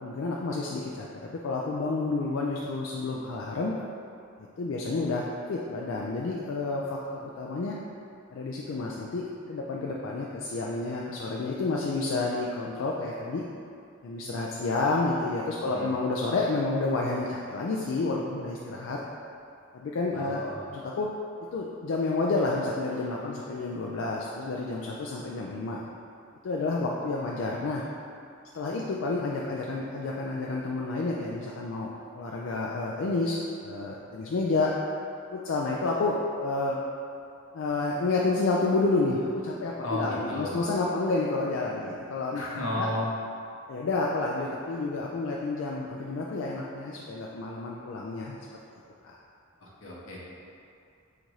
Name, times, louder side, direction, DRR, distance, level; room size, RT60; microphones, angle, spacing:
voice 1, 0.0-3.7 4.6-7.8 8.3-13.4 14.0-19.0 19.7-20.4 20.7-21.1 21.5-25.8 26.4-27.8 28.5-31.9 32.1-34.7 35.3-36.8 37.5-42.4 42.8-42.9 43.7-48.4 49.0-49.2, left 3 dB, 70° left, -3 dB, 0.4 m, -30 dB
voice 2, 15.6-15.9 20.1-20.8 39.8-40.6 42.3-43.1 49.6-50.2, left 1 dB, 85° left, -5 dB, 0.9 m, -34 dB
4.1 x 2.5 x 4.6 m, 2.5 s
head